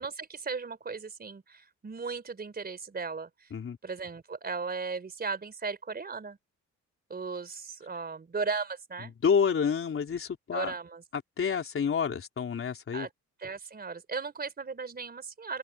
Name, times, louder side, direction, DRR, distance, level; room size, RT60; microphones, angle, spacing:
voice 1, 0.0-3.5 3.8-6.4 7.1-9.1 10.5-11.0 12.9-13.1 13.4-15.6, right 4 dB, 30° right, 4.0 m, -36 dB
voice 2, 9.2-10.7 11.1-13.1, left 6 dB, 45° left, 4.1 m, -28 dB
cardioid pair, 90°, 30 cm